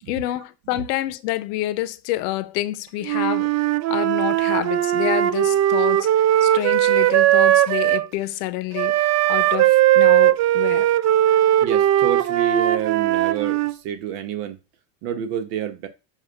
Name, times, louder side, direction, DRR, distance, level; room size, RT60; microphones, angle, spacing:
voice 1, 0.1-3.6 3.9-10.9, left 16 dB, 75° left, 0.7 m, -28 dB
Wind instrument woodwind instrument, 3.0-8.1 8.7-13.7, right 12 dB, 35° right, 0.4 m, -18 dB
voice 2, 11.6-14.6 15.0-15.9, right 8 dB, 70° right, 1.1 m, -28 dB
7.4 x 2.5 x 5.3 m
supercardioid pair, 90°, 48 cm